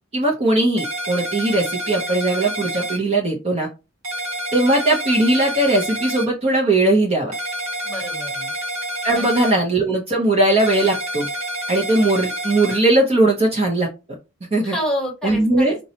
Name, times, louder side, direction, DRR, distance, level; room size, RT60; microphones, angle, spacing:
voice 1, 0.1-3.7 4.5-7.3 9.0-11.3 11.7-13.9 14.5-14.7 15.2-15.8, right 2 dB, 30° right, 0 dB, 0.7 m, -19 dB
sound 1, 0.8-3.0 4.0-6.2 7.3-9.5 10.6-12.8, right 1 dB, 70° right, 1.6 m, -28 dB
voice 2, 7.8-8.5 9.1-9.2 9.5-9.6 14.6-15.8, equal, 5° left, 0 dB, 1.2 m, -28 dB
4.0 x 2.2 x 2.8 m, 0.28 s
head